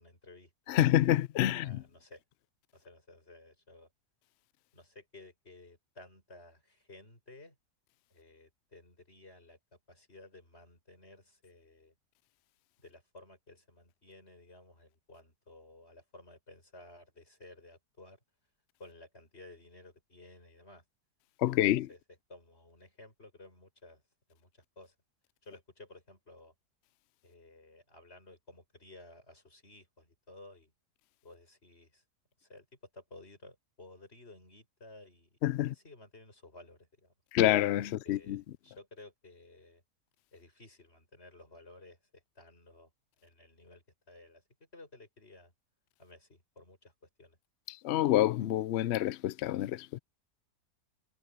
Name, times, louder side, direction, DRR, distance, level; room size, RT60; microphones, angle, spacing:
voice 1, 0.0-0.8 1.5-2.2 2.7-3.9 4.7-7.6 8.1-11.9 12.8-18.2 18.8-20.8 21.4-22.0 22.3-24.0 24.3-25.0 25.4-26.5 27.2-30.7 31.2-32.0 32.4-32.7 32.9-37.1 37.8-39.8 40.3-42.9 43.2-44.4 44.7-45.5 46.0-46.9 47.2-47.4, left 2 dB, 40° left, 6.9 m, -55 dB
voice 2, 0.7-1.8 21.4-21.9 35.4-35.7 37.3-38.4 47.8-50.0, left 13 dB, 75° left, 0.6 m, -27 dB
omnidirectional pair, 1.7 m